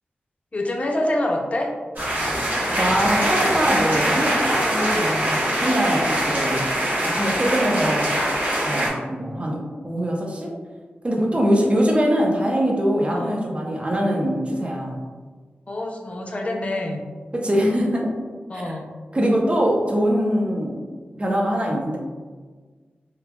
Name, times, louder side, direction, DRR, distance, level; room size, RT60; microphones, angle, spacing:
voice 1, 0.5-1.7 13.1-13.3 15.7-17.0 18.5-18.9, left 1 dB, 35° left, 0 dB, 0.5 m, -26 dB
sound 1, 2.0-8.9, right 1 dB, 55° right, 1.0 m, -23 dB
voice 2, 2.7-6.7 7.0-8.2 8.6-10.5 11.0-15.0 17.3-18.1 18.5-18.7 19.1-20.8 21.2-22.0, equal, 30° right, -1 dB, 0.6 m, -23 dB
3.0 x 2.3 x 2.2 m, 1.4 s
cardioid pair, 65°, 4 cm